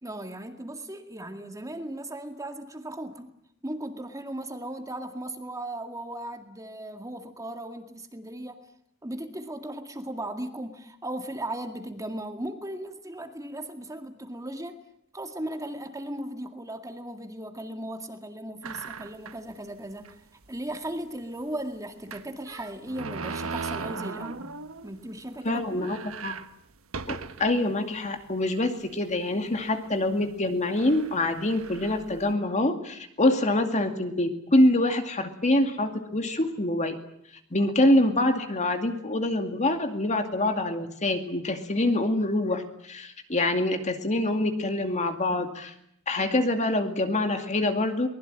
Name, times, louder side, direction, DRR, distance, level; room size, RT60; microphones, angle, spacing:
voice 1, 0.0-3.3 3.6-8.6 9.0-14.8 15.1-24.6 24.8-25.9, right 1 dB, 15° right, 6 dB, 2.0 m, -37 dB
sound 1, 18.6-19.5 20.0-20.1 20.4-20.5 22.1-25.0 25.4-25.5 25.7-27.6 28.2-28.3 29.2-29.5 30.3-30.4 30.8-32.3, right 4 dB, 80° right, 1.3 m, -38 dB
voice 2, 25.4-26.3 27.1-37.0 37.5-45.7 46.1-48.1, left 1 dB, 35° left, 6 dB, 2.3 m, -25 dB
23.5 x 20.5 x 9.0 m, 0.74 s
head